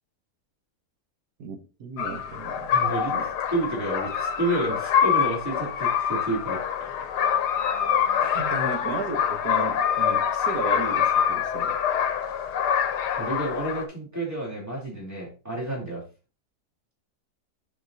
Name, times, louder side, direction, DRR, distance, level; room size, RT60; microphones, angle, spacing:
voice 1, 1.4-3.2 8.3-11.8, right 4 dB, 70° right, 1.6 m, -35 dB
sound 1, 2.0-13.9, left 8 dB, 85° left, 1.4 m, -25 dB
voice 2, 2.7-7.1 8.2-8.4 13.2-16.0, right 2 dB, 10° right, 3.1 m, -30 dB
7.6 x 5.3 x 2.7 m
omnidirectional pair, 1.7 m